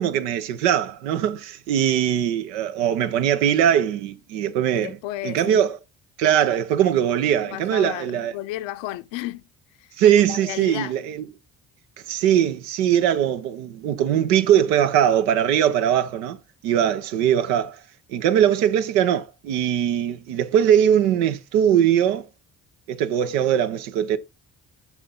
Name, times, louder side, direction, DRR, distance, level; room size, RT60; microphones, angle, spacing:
voice 1, 0.0-5.0 5.2-5.8 6.2-8.3 10.0-11.3 12.1-16.4 16.6-17.8 18.1-22.3 22.9-24.2, right 10 dB, 80° right, 0.9 m, -21 dB
voice 2, 4.7-5.6 7.5-9.4 9.8-9.9 10.3-11.0, left 15 dB, 65° left, 0.8 m, -33 dB
7.3 x 5.7 x 3.8 m
hypercardioid pair, 45°, 49 cm